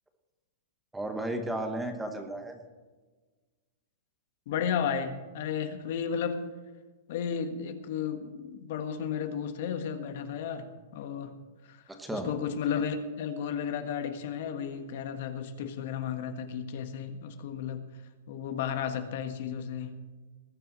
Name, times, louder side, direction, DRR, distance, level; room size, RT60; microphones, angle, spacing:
voice 1, 0.9-2.6 12.0-12.3, right 1 dB, 5° right, 5 dB, 1.2 m, -34 dB
voice 2, 4.5-6.4 7.1-11.3 11.6-11.8 12.1-17.8 18.3-19.9, left 7 dB, 55° left, 8 dB, 1.5 m, -33 dB
19.5 x 6.9 x 6.2 m, 1.3 s
supercardioid pair, 160°, 0 cm